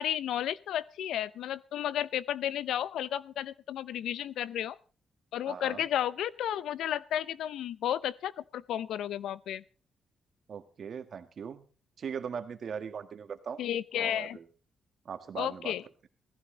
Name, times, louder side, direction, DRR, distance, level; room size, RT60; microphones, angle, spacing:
voice 1, 0.0-4.8 5.3-9.6 13.6-14.4 15.4-15.8, left 11 dB, 90° left, 19 dB, 0.6 m, -33 dB
voice 2, 5.5-5.9 10.5-11.6 12.0-13.6 13.9-14.5 15.1-15.7, right 7 dB, 60° right, 8 dB, 1.7 m, -39 dB
17.0 x 15.0 x 3.9 m, 0.38 s
cardioid pair, 80°, 0 cm